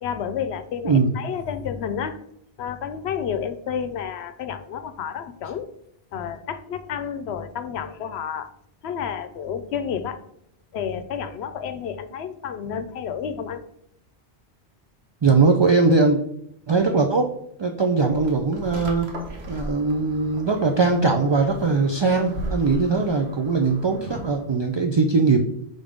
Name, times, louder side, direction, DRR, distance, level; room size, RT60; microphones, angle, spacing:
voice 1, 0.0-2.2 2.6-5.7 6.1-8.5 8.8-10.2 10.7-13.6, left 7 dB, 80° left, 12 dB, 0.8 m, -30 dB
voice 2, 15.2-16.2 16.7-17.3 17.6-19.1 19.5-25.4, right 4 dB, 45° right, 4 dB, 0.3 m, -20 dB
sound 1, 18.1-24.5, right 1 dB, 75° right, 1.4 m, -37 dB
5.5 x 3.5 x 5.0 m, 0.73 s
omnidirectional pair, 1.1 m